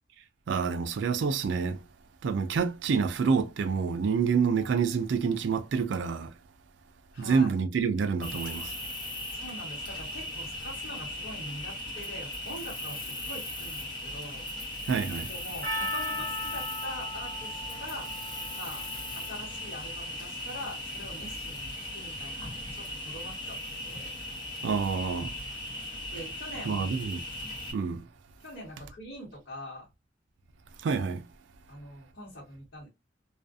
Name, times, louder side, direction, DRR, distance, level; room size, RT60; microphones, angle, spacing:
voice 1, 0.5-1.8 2.2-6.3 7.2-8.7 14.9-15.3 24.6-25.3 26.7-27.2 27.7-28.1 30.8-31.3, right 5 dB, 70° right, 0.3 m, -27 dB
voice 2, 7.1-7.5 9.3-14.5 15.3-18.1 18.5-18.9 19.3-23.6 23.8-24.1 26.1-26.9 28.4-29.9 31.7-32.9, equal, 65° left, 1.2 m, -43 dB
Cricket, 8.2-27.7, left 1 dB, 25° left, 0.9 m, -38 dB
Percussion, 15.6-20.2, left 1 dB, 50° right, 0.8 m, -38 dB
2.4 x 2.3 x 2.3 m
head